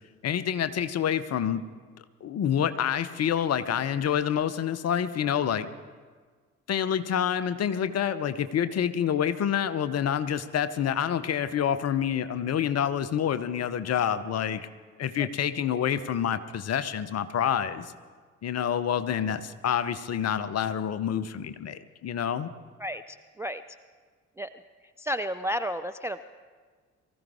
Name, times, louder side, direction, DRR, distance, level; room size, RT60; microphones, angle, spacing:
voice 1, 0.2-1.6 2.2-5.7 6.7-14.7 15.0-17.9 18.4-22.5, left 9 dB, 40° left, 13 dB, 0.8 m, -27 dB
voice 2, 22.8-23.6 24.4-24.5 25.0-26.2, equal, 10° right, 12 dB, 0.4 m, -32 dB
23.5 x 14.0 x 3.6 m, 1.5 s
figure-of-eight pair, 45°, 37 cm